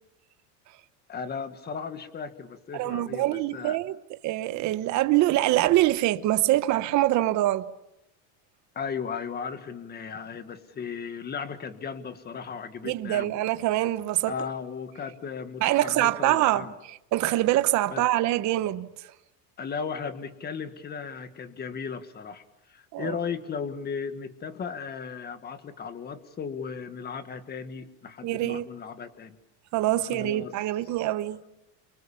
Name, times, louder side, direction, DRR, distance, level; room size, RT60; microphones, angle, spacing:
voice 1, 1.1-3.8 8.8-13.3 14.3-16.7 17.9-18.0 19.6-22.4 22.7-29.4 30.1-30.5, left 6 dB, 20° left, 1.7 m, -36 dB
voice 2, 2.7-4.0 4.2-7.7 12.8-14.3 15.6-19.1 22.9-23.2 28.2-28.7 29.7-31.4, right 15 dB, 40° right, 1.1 m, -25 dB
29.5 x 25.0 x 7.0 m
cardioid pair, 150°, 43 cm